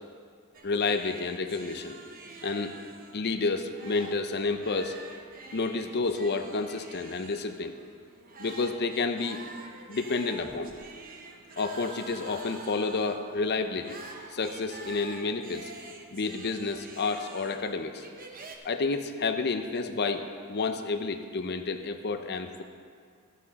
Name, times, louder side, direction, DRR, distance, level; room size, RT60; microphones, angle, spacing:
sound 1, 0.5-18.6, right 3 dB, 40° right, 0.9 m, -47 dB
voice 1, 0.6-2.0 2.4-2.8 3.1-4.9 5.5-7.8 8.4-9.4 9.9-10.7 11.6-14.0 14.3-15.7 16.1-18.0 18.6-22.6, left 3 dB, 45° left, 7 dB, 0.6 m, -30 dB
12.5 x 8.3 x 4.1 m, 2.3 s
head